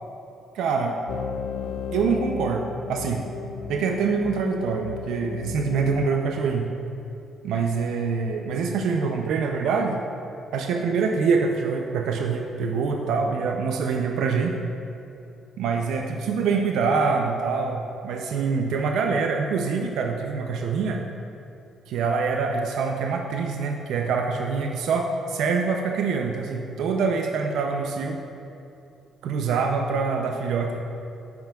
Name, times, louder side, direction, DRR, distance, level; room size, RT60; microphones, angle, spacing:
voice 1, 0.5-1.0 1.9-3.2 3.7-6.7 7.4-10.0 10.5-14.6 15.6-21.0 21.9-28.2 29.2-30.8, right 5 dB, 80° right, 3 dB, 0.4 m, -25 dB
sound 1, 1.1-6.1, left 6 dB, 70° left, 0.3 m, -34 dB
9.3 x 6.7 x 2.3 m, 2.7 s
cardioid pair, 130°, 0 cm